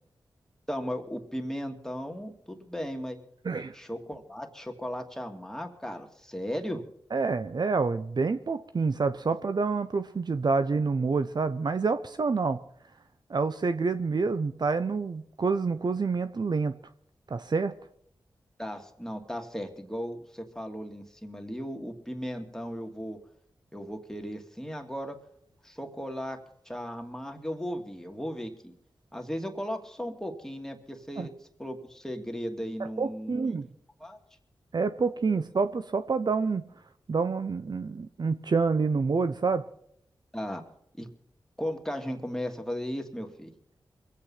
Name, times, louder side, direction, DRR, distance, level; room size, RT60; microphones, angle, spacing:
voice 1, 0.7-3.2 3.7-6.8 18.6-23.2 23.7-25.2 25.6-26.4 26.7-28.7 29.1-31.3 31.6-33.6 34.0-34.2 40.3-40.6 41.0-41.1 41.6-43.5, equal, 5° left, 4 dB, 2.6 m, -36 dB
voice 2, 7.1-12.6 13.3-16.8 17.3-17.7 31.2-31.3 32.8-33.7 34.7-36.6 37.1-39.6, right 4 dB, 55° right, 11 dB, 0.8 m, -27 dB
22.5 x 8.4 x 5.7 m, 0.69 s
cardioid pair, 45°, 8 cm